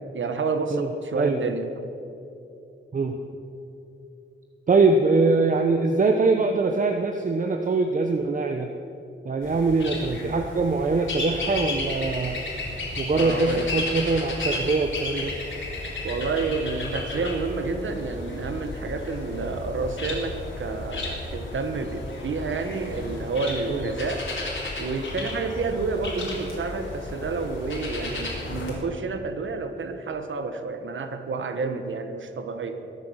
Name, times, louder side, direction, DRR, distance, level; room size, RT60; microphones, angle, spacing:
voice 1, 0.1-1.7 13.1-14.0 16.0-24.3 24.8-32.9, right 4 dB, 80° right, 8 dB, 1.3 m, -29 dB
voice 2, 1.1-1.5 2.9-3.2 4.7-8.7 9.2-12.4 13.0-15.3 23.7-23.9 31.6-31.7, right 3 dB, 40° right, 5 dB, 0.9 m, -23 dB
sound 1, 9.4-28.7, left 2 dB, 85° left, 4.2 m, -33 dB
22.0 x 9.6 x 6.4 m, 2.8 s
wide cardioid pair, 115°, 20 cm